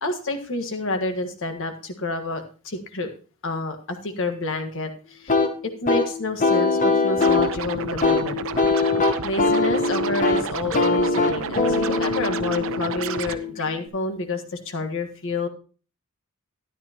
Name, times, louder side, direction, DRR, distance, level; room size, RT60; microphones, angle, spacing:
voice 1, 0.0-3.1 3.4-5.4 5.8-8.4 9.2-15.5, left 2 dB, 60° left, 6 dB, 1.5 m, -29 dB
sound 1, 5.3-13.9, left 3 dB, 35° left, 1.1 m, -22 dB
Scratching (performance technique), 7.2-13.4, right 6 dB, 65° right, 0.7 m, -32 dB
13.0 x 11.0 x 2.9 m, 0.37 s
head